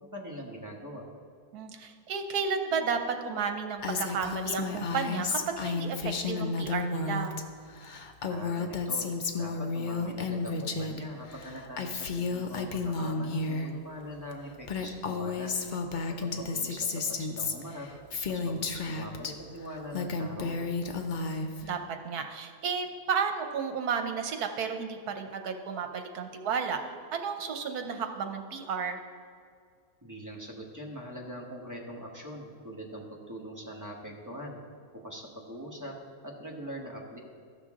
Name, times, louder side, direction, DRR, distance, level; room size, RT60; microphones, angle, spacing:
voice 1, 0.0-1.1 8.3-9.1 9.4-15.6 16.2-17.9 18.3-20.6 30.0-34.6 34.9-35.9 36.2-37.2, equal, 15° right, -2 dB, 1.1 m, -42 dB
voice 2, 1.5-7.3 21.6-26.8 27.1-29.0, right 6 dB, 80° right, 6 dB, 1.3 m, -32 dB
Female speech woman speaking, 3.8-7.4 7.7-11.0 11.3-13.7 14.3-14.4 14.6-19.3 19.7-21.7, left 4 dB, 65° left, 0.4 m, -32 dB
15.0 x 6.0 x 3.6 m, 2.1 s
omnidirectional pair, 1.6 m